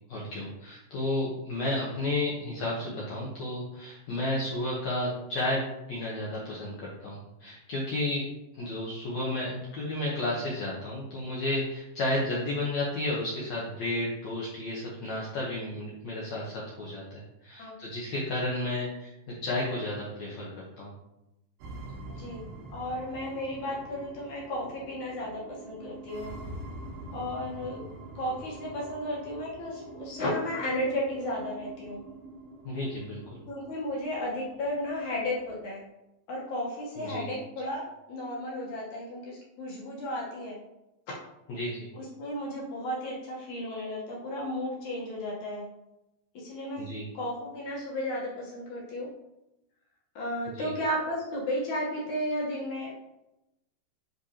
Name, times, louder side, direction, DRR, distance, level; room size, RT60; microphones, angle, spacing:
voice 1, 0.1-5.6 5.9-8.3 8.5-20.5 20.8-20.9 32.6-33.4 37.0-37.3 41.5-41.9 46.8-47.1 50.6-50.7, left 1 dB, 90° left, -5 dB, 1.5 m, -32 dB
sound 1, 21.6-35.6, right 2 dB, 90° right, 3.4 m, -45 dB
voice 2, 22.0-22.4 22.7-26.3 27.1-27.9 28.2-32.0 33.5-35.8 36.3-37.8 38.1-40.6 41.9-45.6 46.3-46.8 47.1-49.1 50.2-52.9, left 1 dB, 65° left, -5 dB, 2.0 m, -34 dB
10.5 x 4.0 x 2.9 m, 0.93 s
omnidirectional pair, 4.9 m